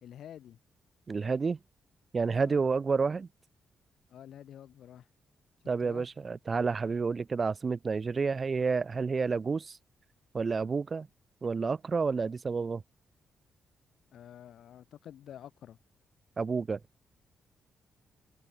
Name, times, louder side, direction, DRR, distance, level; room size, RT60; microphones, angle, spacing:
voice 1, 0.0-0.6 2.4-2.6 4.1-5.1 5.8-6.1 14.1-15.8, left 10 dB, 75° left, 0.7 m, -49 dB
voice 2, 1.1-1.6 2.1-3.3 5.7-9.8 10.3-11.1 11.4-12.8 16.4-16.8, right 4 dB, 30° right, 0.5 m, -30 dB
wide cardioid pair, 150°, 0 cm